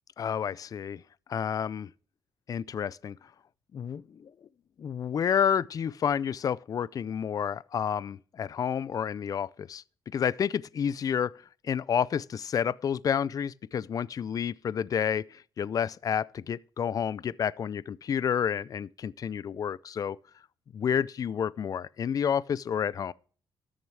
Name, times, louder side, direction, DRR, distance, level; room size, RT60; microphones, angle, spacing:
voice 1, 0.2-1.0 1.3-1.9 2.5-3.2 3.7-4.3 4.8-9.8 10.1-11.3 11.6-20.2 20.7-23.1, left 8 dB, 45° left, 0.4 m, -30 dB
13.0 x 6.6 x 4.8 m
cardioid pair, 105°, 8 cm